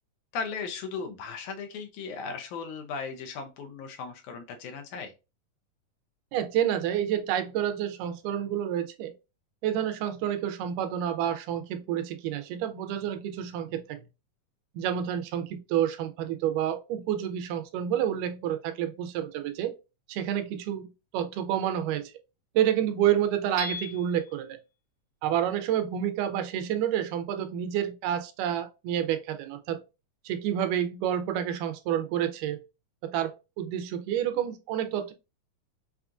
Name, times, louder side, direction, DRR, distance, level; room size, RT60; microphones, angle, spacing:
voice 1, 0.3-5.1, left 5 dB, 75° left, 1.8 m, -37 dB
voice 2, 6.3-9.1 9.6-14.0 14.8-19.8 20.1-22.1 22.5-24.6 25.2-29.8 30.3-32.6 33.0-35.1, right 10 dB, 85° right, 2.2 m, -29 dB
Hammer / Chink clink, 23.6-24.4, left 1 dB, 65° right, 1.7 m, -36 dB
5.7 x 2.4 x 2.4 m
omnidirectional pair, 3.8 m